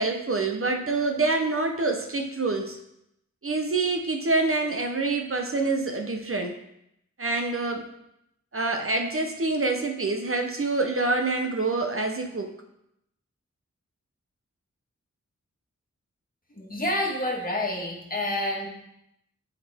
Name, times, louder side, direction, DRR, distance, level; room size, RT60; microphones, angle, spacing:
voice 1, 0.0-2.8 3.4-6.5 7.2-7.8 8.5-12.5, right 3 dB, 50° right, 4 dB, 0.8 m, -26 dB
voice 2, 16.5-18.7, left 1 dB, 30° left, -1 dB, 1.8 m, -28 dB
8.0 x 5.1 x 3.5 m, 0.81 s
wide cardioid pair, 65°, 29 cm